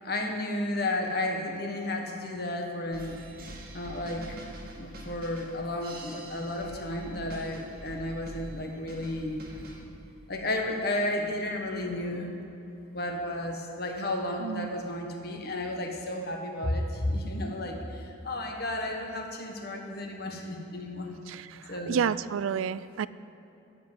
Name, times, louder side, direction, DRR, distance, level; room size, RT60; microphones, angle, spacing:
voice 1, 0.0-3.2 3.7-9.4 10.3-12.4 12.9-21.2 21.7-22.1, left 1 dB, 50° left, 2 dB, 1.4 m, -33 dB
sound 1, 2.9-9.8, right 1 dB, 50° right, 1.6 m, -45 dB
voice 2, 14.4-14.7 21.3-23.1, right 7 dB, 85° right, 17 dB, 0.3 m, -30 dB
13.5 x 5.5 x 7.9 m, 2.9 s
head